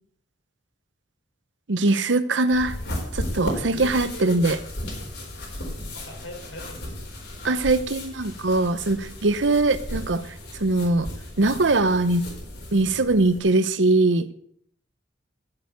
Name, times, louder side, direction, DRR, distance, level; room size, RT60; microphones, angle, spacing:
voice 1, 1.7-2.8 3.1-4.6 7.4-10.2 10.6-11.1 11.4-12.2 12.7-14.3, right 2 dB, 80° right, 13 dB, 0.9 m, -21 dB
sound 1, 2.5-13.4, left 1 dB, 65° left, 4.1 m, -35 dB
voice 2, 3.7-4.4 5.9-7.5, left 1 dB, 85° left, 1 dB, 4.6 m, -41 dB
15.0 x 6.9 x 7.0 m, 0.65 s
head